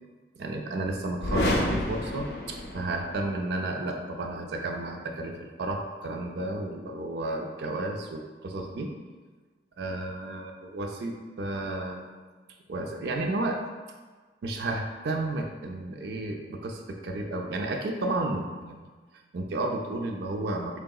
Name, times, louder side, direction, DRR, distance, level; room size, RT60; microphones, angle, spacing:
voice 1, 0.4-8.9 9.8-12.1 12.7-13.6 14.4-18.8 19.3-20.8, right 2 dB, 60° right, 3 dB, 0.4 m, -32 dB
sound 1, 1.2-3.2, left 1 dB, 55° left, 0.5 m, -29 dB
3.7 x 3.7 x 2.3 m, 1.4 s
head